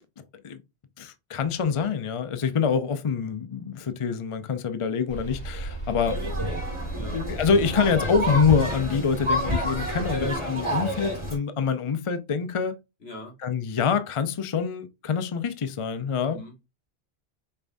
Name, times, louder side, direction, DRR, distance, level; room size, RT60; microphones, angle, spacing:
voice 1, 1.0-6.2 7.1-12.8 13.4-16.4, left 6 dB, 40° left, 0.4 m, -26 dB
sound 1, 5.1-10.3, right 2 dB, 25° left, 3.1 m, -36 dB
sound 2, 6.0-11.4, equal, 25° right, 2.1 m, -29 dB
voice 2, 10.1-10.9 11.1-11.2 13.0-13.3 16.2-16.7, equal, 70° left, 2.0 m, -38 dB
5.5 x 3.5 x 2.6 m
omnidirectional pair, 1.1 m